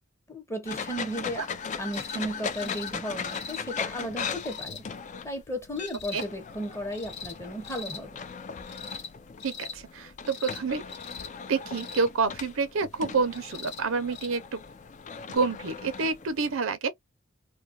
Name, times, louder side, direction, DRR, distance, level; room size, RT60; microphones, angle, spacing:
voice 1, 0.3-1.5 1.8-4.8 5.2-8.2, equal, 15° left, 0.8 m, -35 dB
sound 1, 0.7-16.6, left 6 dB, 35° left, 0.4 m, -38 dB
sound 2, 1.9-2.2 2.5-2.9 3.2-3.6 4.4-4.8 5.8-6.3 6.9-7.4 7.6-8.0 8.7-9.1 9.4-9.8 10.3-10.6 10.9-11.3 11.7-12.0 13.3-13.8 14.1-14.3 15.4-15.5, left 5 dB, 55° left, 0.8 m, -41 dB
voice 2, 9.4-10.8 11.5-14.6 15.3-16.9, right 4 dB, 75° right, 0.6 m, -28 dB
2.3 x 2.2 x 2.6 m
head